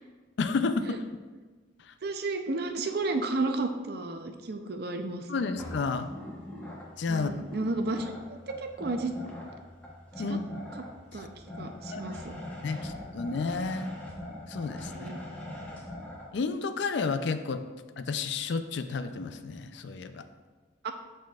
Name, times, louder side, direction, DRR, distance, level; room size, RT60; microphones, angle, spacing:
voice 1, 0.4-1.0 1.9-2.0 5.3-6.1 7.0-7.3 10.2-10.6 11.6-12.2 12.6-13.9 14.5-14.9 16.3-17.6 18.0-20.2, left 4 dB, 60° left, 10 dB, 0.4 m, -31 dB
voice 2, 2.0-5.3 7.1-9.2 10.2-10.4 10.7-10.8 11.1-11.3 11.6-12.4 14.9-15.2 20.8-20.9, right 2 dB, 50° right, 6 dB, 0.5 m, -32 dB
sound 1, 5.5-16.3, left 1 dB, 5° left, 0.9 m, -42 dB
12.5 x 4.2 x 2.4 m, 1.3 s
head